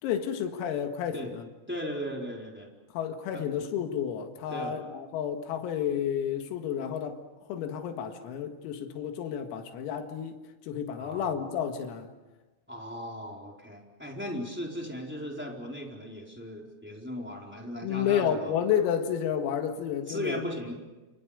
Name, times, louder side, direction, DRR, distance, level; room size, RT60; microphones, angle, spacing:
voice 1, 0.0-1.5 2.9-7.2 7.5-12.1 17.8-20.4, left 8 dB, 90° left, 4.5 m, -31 dB
voice 2, 1.7-2.7 3.3-3.4 4.5-4.8 11.0-11.4 12.7-18.5 20.1-20.7, equal, ahead, 3.5 m, -37 dB
30.0 x 28.5 x 5.2 m
omnidirectional pair, 6.0 m